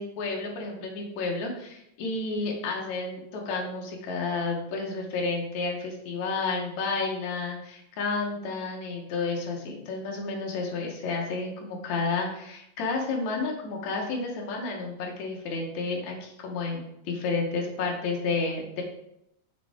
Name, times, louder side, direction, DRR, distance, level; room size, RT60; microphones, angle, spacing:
voice 1, 0.0-18.8, left 3 dB, 65° left, 0 dB, 2.6 m, -31 dB
6.8 x 6.5 x 3.6 m, 0.80 s
omnidirectional pair, 3.7 m